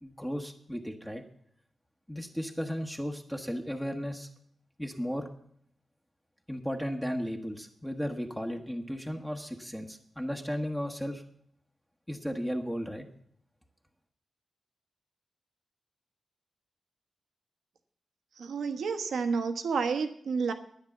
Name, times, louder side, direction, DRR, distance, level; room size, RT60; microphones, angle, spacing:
voice 1, 0.0-1.2 2.1-4.3 4.8-5.3 6.5-11.2 12.1-13.0, equal, 5° left, 3 dB, 1.1 m, -35 dB
voice 2, 18.4-20.5, right 5 dB, 90° right, 7 dB, 1.2 m, -30 dB
10.5 x 9.9 x 7.1 m, 0.65 s
wide cardioid pair, 120°, 0 cm